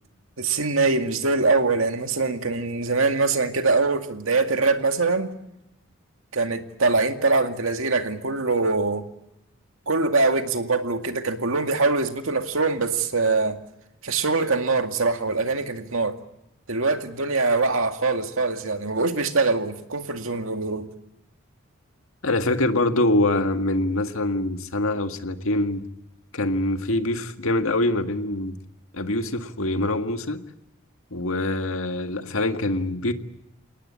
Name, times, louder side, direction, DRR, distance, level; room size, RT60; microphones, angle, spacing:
voice 1, 0.4-5.4 6.3-9.1 9.9-13.6 14.0-16.2 16.7-20.9, right 3 dB, 85° right, 2.2 m, -23 dB
voice 2, 22.2-25.8 26.3-28.6 28.9-30.4 31.1-33.1, left 2 dB, 90° left, 1.8 m, -24 dB
28.5 x 18.5 x 8.5 m
head